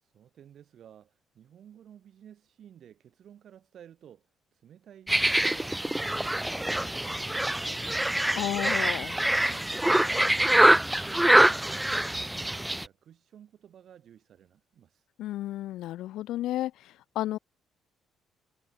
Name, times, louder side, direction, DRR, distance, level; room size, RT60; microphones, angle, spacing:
voice 1, 0.0-8.4 9.1-15.0, right 9 dB, 50° right, 4.4 m, -54 dB
sound 1, 5.1-12.9, right 1 dB, 10° right, 0.4 m, -24 dB
voice 2, 8.4-9.1 15.2-17.4, left 14 dB, 60° left, 0.9 m, -32 dB
figure-of-eight pair, 45°, 0 cm